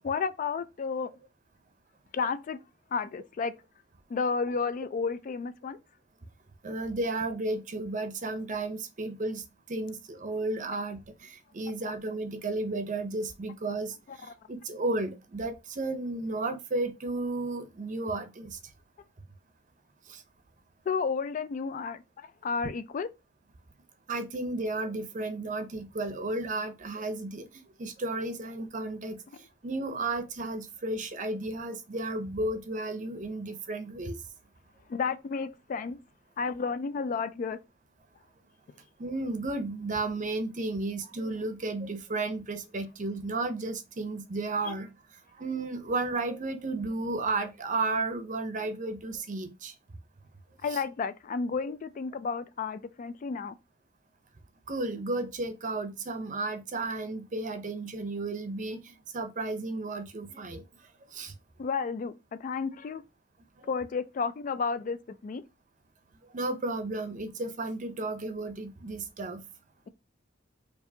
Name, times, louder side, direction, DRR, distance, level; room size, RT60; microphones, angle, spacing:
voice 1, 0.0-1.1 2.1-2.6 2.9-3.5 4.1-5.8 14.1-14.2 20.9-23.1 34.9-36.0 36.4-37.6 44.7-44.8 50.6-53.6 61.6-62.1 62.4-63.0 63.7-65.4, left 5 dB, 45° left, 0.3 m, -32 dB
voice 2, 6.6-18.6 20.1-20.2 24.1-27.5 27.8-29.2 29.6-34.2 39.0-44.9 45.4-49.7 50.7-50.8 54.7-60.6 61.1-61.3 66.2-69.4, right 2 dB, 40° right, 0.6 m, -33 dB
4.7 x 2.5 x 2.7 m
head